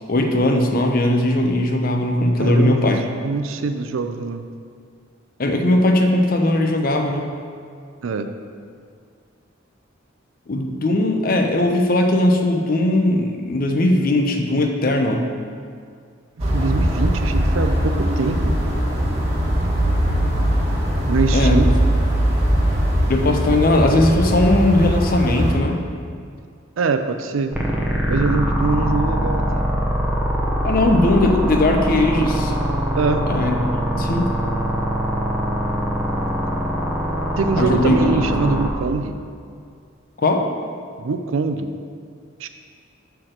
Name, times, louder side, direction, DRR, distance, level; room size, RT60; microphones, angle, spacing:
voice 1, 0.1-3.0 5.4-7.3 10.5-15.3 21.3-21.6 23.1-25.9 30.6-32.5 33.3-33.5 33.9-34.3 37.6-38.2 40.2-40.5, left 1 dB, 45° left, 4 dB, 0.6 m, -18 dB
voice 2, 2.4-2.9 3.2-4.4 8.0-8.3 16.5-18.6 21.1-21.7 26.8-27.6 28.1-29.6 33.0-33.3 37.4-39.2 41.0-41.7 42.4-42.5, right 4 dB, 85° right, 8 dB, 0.5 m, -23 dB
sound 1, 16.4-25.5, equal, 30° right, 1.4 m, -20 dB
sound 2, 27.5-38.7, equal, 5° right, 0.8 m, -22 dB
5.8 x 4.5 x 6.4 m, 2.2 s
head